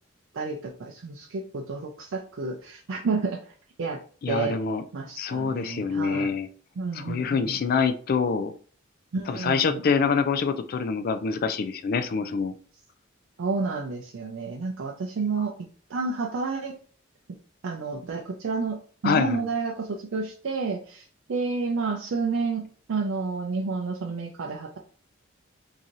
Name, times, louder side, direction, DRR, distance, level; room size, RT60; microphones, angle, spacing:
voice 1, 0.3-3.5 3.8-4.0 4.3-4.6 4.9-6.3 6.8-7.6 9.1-9.8 13.4-15.6 15.9-16.8 17.6-24.8, right 4 dB, 65° right, 1 dB, 0.5 m, -30 dB
voice 2, 4.2-4.8 5.2-6.5 6.9-8.5 9.3-12.5 19.0-19.5, left 5 dB, 45° left, 10 dB, 0.3 m, -25 dB
3.8 x 2.6 x 3.0 m, 0.43 s
head